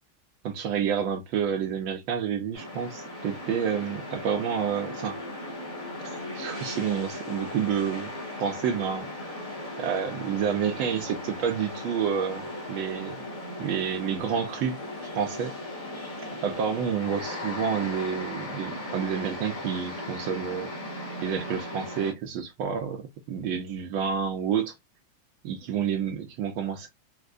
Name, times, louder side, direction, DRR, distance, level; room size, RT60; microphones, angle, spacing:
voice 1, 0.4-5.2 6.0-8.1 8.4-9.1 9.8-13.2 13.6-14.8 15.1-15.6 16.4-20.7 21.2-24.8 25.4-26.9, right 7 dB, 80° right, 1.4 m, -29 dB
sound 1, 2.5-22.1, left 1 dB, 25° left, 0.8 m, -37 dB
4.4 x 2.4 x 2.4 m
omnidirectional pair, 2.3 m